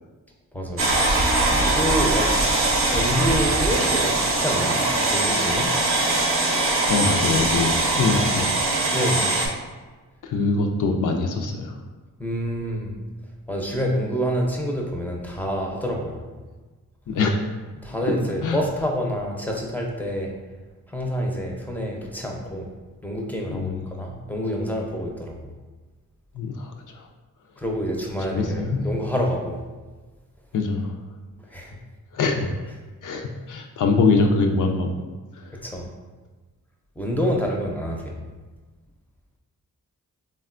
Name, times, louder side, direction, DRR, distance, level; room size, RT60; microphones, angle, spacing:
voice 1, 0.5-0.9 1.6-2.3 2.9-4.8 5.1-5.7 8.9-9.3 12.2-13.0 13.5-16.2 17.8-20.3 20.9-22.7 23.0-25.5 27.6-29.6 31.5-31.8 35.6-35.9 37.0-38.2, equal, 5° left, 0 dB, 0.5 m, -27 dB
sound 1, 0.8-9.5, right 2 dB, 40° right, 0.6 m, -21 dB
voice 2, 6.9-8.6 10.2-11.7 17.1-17.4 18.4-18.6 23.5-24.0 26.3-27.1 28.3-28.9 30.5-31.0 32.1-32.5 33.0-34.9 35.4-35.6, left 3 dB, 65° left, 4 dB, 0.4 m, -23 dB
3.4 x 2.2 x 2.4 m, 1.3 s
cardioid pair, 55°, 34 cm